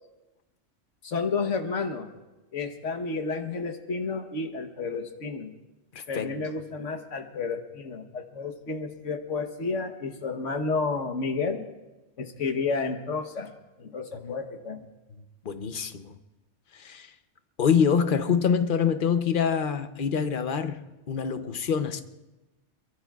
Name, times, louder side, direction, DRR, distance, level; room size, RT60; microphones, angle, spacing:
voice 1, 1.0-2.1 2.5-5.6 6.1-11.7 12.2-13.5 13.8-14.8, left 4 dB, 80° left, 1.5 m, -31 dB
voice 2, 5.9-6.3 14.2-14.3 15.4-16.2 16.7-17.1 17.6-22.0, left 7 dB, 50° left, 0.9 m, -25 dB
23.0 x 22.5 x 2.4 m
omnidirectional pair, 1.2 m